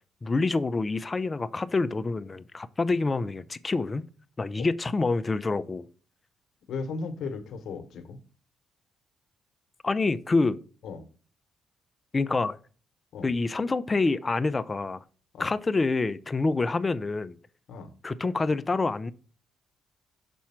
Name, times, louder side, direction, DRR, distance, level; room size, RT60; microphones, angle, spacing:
voice 1, 0.2-4.1 4.4-5.9 9.8-10.6 12.1-12.6 13.2-15.0 15.4-17.4 18.0-19.1, left 3 dB, 25° left, 0.5 m, -27 dB
voice 2, 6.7-8.2 10.8-11.0 13.1-13.3 15.3-15.5 17.7-17.9, left 4 dB, 70° left, 1.1 m, -36 dB
6.3 x 4.2 x 5.8 m
cardioid pair, 90°, 0 cm